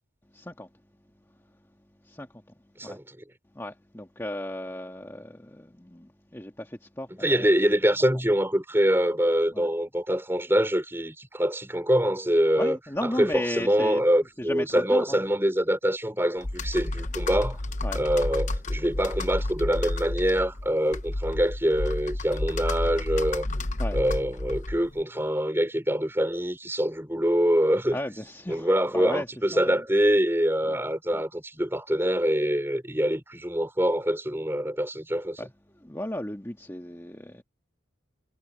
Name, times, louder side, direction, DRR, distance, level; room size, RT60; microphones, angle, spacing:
voice 1, 0.3-0.7 1.3-1.5 2.0-2.4 2.8-3.0 3.5-7.5 8.0-8.1 9.5-9.7 12.6-14.0 14.4-15.2 17.8-18.1 23.8-24.0 27.9-29.8 30.7-30.8 31.1-31.2 35.4-35.5 35.7-37.4, left 1 dB, 10° left, 1.7 m, -35 dB
voice 2, 7.2-17.6 17.9-23.5 23.9-28.0 28.5-35.4, equal, 10° right, 4.7 m, -25 dB
Computer keyboard, 16.4-25.0, left 1 dB, 35° left, 0.9 m, -31 dB
head